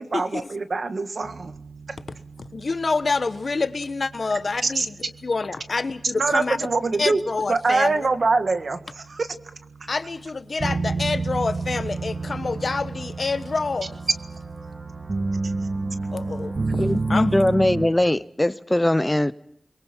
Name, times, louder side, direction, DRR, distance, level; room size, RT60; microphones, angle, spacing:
voice 1, 0.0-1.5 1.9-2.0 4.6-4.9 6.2-7.2 7.5-9.3 15.4-15.5, right 3 dB, 70° right, 1.8 m, -24 dB
sound 1, 1.2-17.9, right 3 dB, 55° right, 2.7 m, -32 dB
voice 2, 2.4-4.9 5.2-6.6 7.0-8.1 9.9-13.9 16.1-17.5, left 3 dB, 60° left, 1.2 m, -27 dB
voice 3, 16.8-19.3, left 1 dB, 20° left, 0.9 m, -20 dB
29.5 x 22.5 x 4.5 m
cardioid pair, 50°, 0 cm